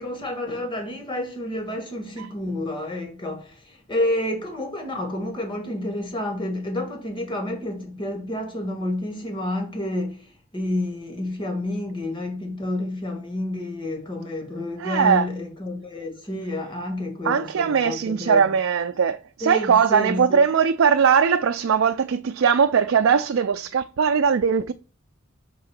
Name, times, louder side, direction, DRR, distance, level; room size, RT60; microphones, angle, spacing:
voice 1, 0.0-18.4 19.4-20.4, left 1 dB, 25° left, 1.8 m, -29 dB
voice 2, 14.8-15.3 17.2-24.7, right 6 dB, 70° right, 0.4 m, -20 dB
5.5 x 3.8 x 5.9 m
head